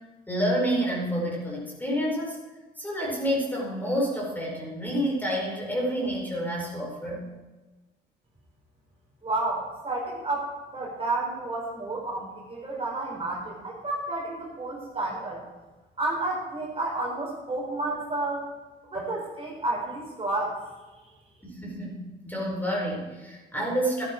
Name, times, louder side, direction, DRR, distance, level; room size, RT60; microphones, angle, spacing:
voice 1, 0.3-2.4 2.8-7.3 21.4-24.0, equal, 10° left, -3 dB, 4.9 m, -29 dB
voice 2, 9.2-15.4 16.0-18.4 18.9-20.5, right 2 dB, 30° right, -3 dB, 4.5 m, -31 dB
13.0 x 11.0 x 4.7 m, 1.2 s
cardioid pair, 90°, 20 cm